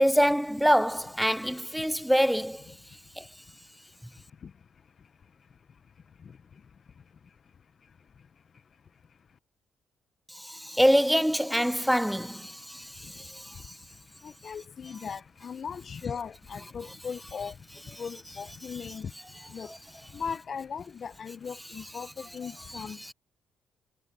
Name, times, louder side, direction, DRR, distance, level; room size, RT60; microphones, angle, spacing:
voice 1, 0.0-2.7 3.2-3.3 10.3-13.7 22.7-22.8, equal, ahead, 0.4 m, -25 dB
voice 2, 1.8-2.1 2.9-9.4 12.6-23.1, left 6 dB, 45° left, 0.7 m, -41 dB
cardioid pair, 90°, 0 cm